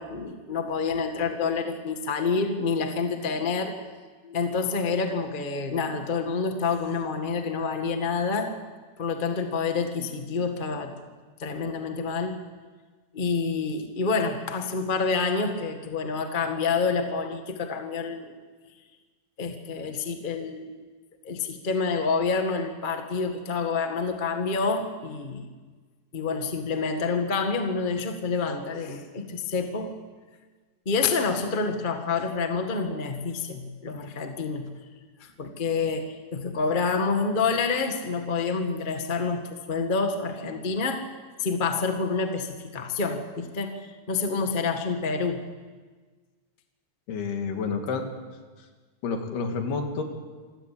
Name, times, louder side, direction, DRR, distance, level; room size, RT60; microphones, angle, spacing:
voice 1, 0.0-3.7 4.2-8.5 9.0-10.9 11.4-12.4 13.1-18.3 19.4-20.8 21.2-25.5 26.1-29.9 30.8-34.7 35.2-41.1 41.4-45.4, left 4 dB, 60° left, 5 dB, 0.5 m, -28 dB
voice 2, 47.1-48.1 49.0-50.0, left 4 dB, 80° left, 4 dB, 4.1 m, -29 dB
26.5 x 15.5 x 8.5 m, 1.4 s
omnidirectional pair, 4.5 m